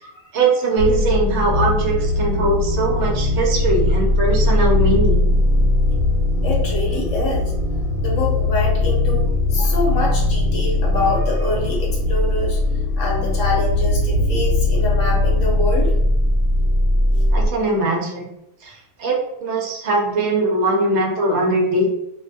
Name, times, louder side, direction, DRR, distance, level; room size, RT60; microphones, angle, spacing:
voice 1, 0.3-5.3 17.3-18.3 18.6-21.9, right 2 dB, 60° right, -1 dB, 0.7 m, -21 dB
sound 1, 0.8-17.5, left 2 dB, 85° left, 1.2 m, -19 dB
voice 2, 6.4-7.5 8.0-12.6 13.0-15.9, left 2 dB, 60° left, -3 dB, 0.9 m, -25 dB
2.6 x 2.1 x 2.5 m, 0.83 s
omnidirectional pair, 1.7 m